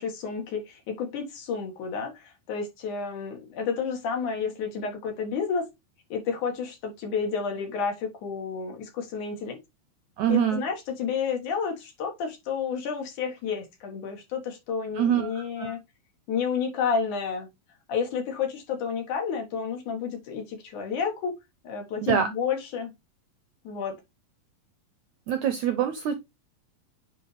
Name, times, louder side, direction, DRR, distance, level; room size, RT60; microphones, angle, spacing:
voice 1, 0.0-5.7 6.1-9.6 10.3-15.8 16.3-17.5 17.9-21.3 21.6-22.9 23.6-24.0, left 6 dB, 60° left, 3.0 m, -30 dB
voice 2, 10.2-10.6 15.0-15.7 22.0-22.3 25.3-26.2, right 9 dB, 75° right, 1.7 m, -25 dB
9.1 x 4.3 x 3.3 m
omnidirectional pair, 4.2 m